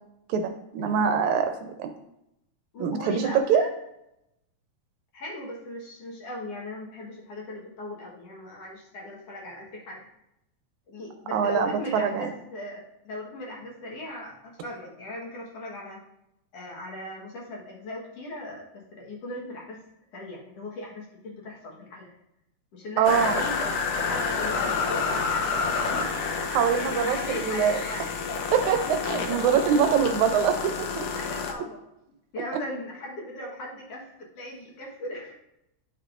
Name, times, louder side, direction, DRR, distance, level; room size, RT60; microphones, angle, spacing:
voice 1, 0.3-1.9 2.8-3.6 11.3-12.3 23.0-23.4 26.5-27.8 28.5-28.8 29.0-31.1, right 7 dB, 80° right, 6 dB, 1.8 m, -24 dB
voice 2, 2.7-3.7 5.1-10.0 10.9-16.0 16.5-19.8 20.1-22.2 22.7-23.6 23.9-26.1 26.4-28.4 28.9-29.1 29.4-29.8 31.1-31.8 32.3-35.3, left 1 dB, 60° left, -3 dB, 2.1 m, -38 dB
sound 1, 23.0-31.5, left 5 dB, 75° left, 1.5 m, -29 dB
11.0 x 5.6 x 2.4 m, 0.84 s
omnidirectional pair, 3.6 m